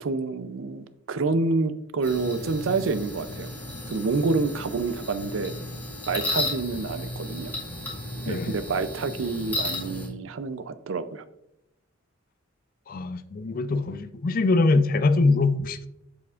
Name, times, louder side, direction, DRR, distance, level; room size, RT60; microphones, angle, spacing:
voice 1, 0.0-3.5 3.9-5.5 6.1-7.5 8.2-11.2, right 3 dB, 75° right, 13 dB, 0.5 m, -28 dB
sound 1, 2.0-10.1, left 1 dB, 10° left, 1.9 m, -34 dB
voice 2, 12.9-15.9, left 3 dB, 45° left, 13 dB, 0.4 m, -23 dB
8.2 x 6.9 x 2.5 m, 0.86 s
head